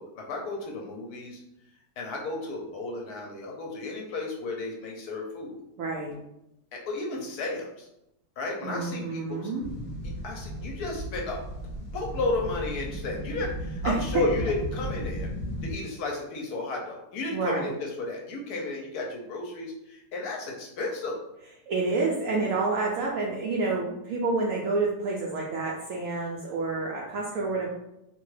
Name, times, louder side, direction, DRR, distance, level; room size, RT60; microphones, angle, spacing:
voice 1, 0.0-1.4 2.0-5.6 6.7-7.9 8.4-9.5 10.2-11.4 11.9-15.3 15.6-21.2, left 2 dB, 70° left, -1 dB, 1.0 m, -33 dB
voice 2, 5.8-6.1 8.6-9.7 13.8-14.0 17.3-17.8 21.7-27.7, right 3 dB, 75° right, -2 dB, 0.7 m, -29 dB
sound 1, 9.6-15.7, equal, 15° left, 0.8 m, -35 dB
3.0 x 2.2 x 3.1 m, 0.85 s
omnidirectional pair, 1.9 m